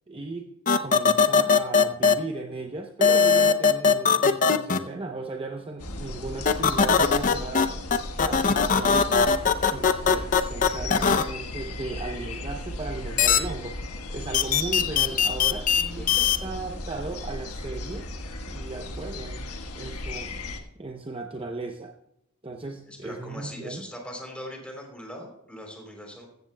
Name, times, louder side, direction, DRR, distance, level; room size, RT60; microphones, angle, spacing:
voice 1, 0.1-0.5 0.8-7.7 8.3-9.2 9.6-13.8 14.1-15.7 15.9-18.1 18.4-19.5 19.7-20.4 20.8-21.9 22.4-23.9, right 3 dB, 25° right, 3 dB, 0.7 m, -36 dB
sound 1, 0.7-2.1 3.0-4.8 6.5-7.7 7.9-11.2 13.2-13.4 14.3-16.4, left 6 dB, 35° left, 0.5 m, -19 dB
sound 2, 5.8-20.6, left 1 dB, 85° left, 1.4 m, -36 dB
voice 2, 15.4-16.7 22.9-26.3, equal, 5° left, 1 dB, 3.3 m, -41 dB
14.5 x 14.5 x 2.2 m, 0.82 s
head